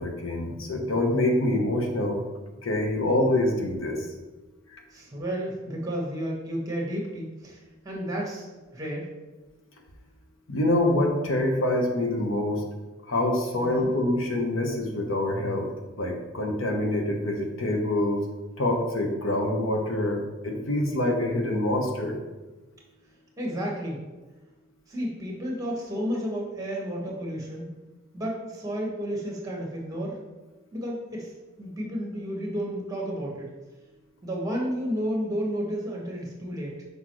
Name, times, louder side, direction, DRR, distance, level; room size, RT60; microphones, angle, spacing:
voice 1, 0.0-2.2 2.6-4.1 4.7-4.8 10.5-12.6 13.1-15.7 16.0-18.2 18.6-22.2, left 1 dB, 85° left, 2 dB, 1.0 m, -25 dB
voice 2, 4.9-7.6 7.8-8.5 8.7-9.1 13.6-13.9 23.4-24.0 24.9-27.7 28.1-30.2 30.7-33.5 34.2-36.8, equal, 15° right, -1 dB, 1.4 m, -32 dB
6.1 x 5.3 x 3.1 m, 1.2 s
head